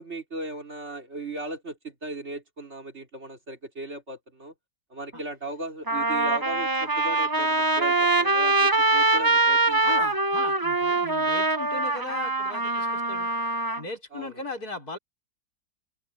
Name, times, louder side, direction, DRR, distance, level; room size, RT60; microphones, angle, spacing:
voice 1, 0.0-4.5 4.9-10.1 14.1-14.4, right 2 dB, 35° right, 3.3 m, -37 dB
Trumpet, 5.1-5.2 5.9-13.8, right 3 dB, 15° right, 0.7 m, -23 dB
voice 2, 9.8-13.3 13.8-15.0, left 3 dB, 50° left, 6.2 m, -37 dB
open air
omnidirectional pair, 2.0 m